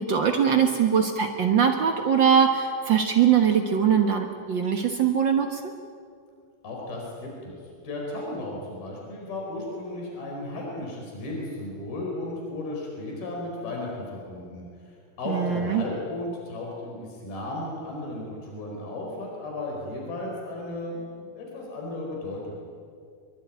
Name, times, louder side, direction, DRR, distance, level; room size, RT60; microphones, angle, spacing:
voice 1, 0.0-5.6 15.3-15.8, right 7 dB, 80° right, 3 dB, 1.0 m, -22 dB
voice 2, 6.6-7.6 7.8-14.7 15.2-22.6, left 2 dB, 75° left, -1 dB, 6.5 m, -34 dB
25.5 x 23.5 x 9.7 m, 2.2 s
omnidirectional pair, 4.3 m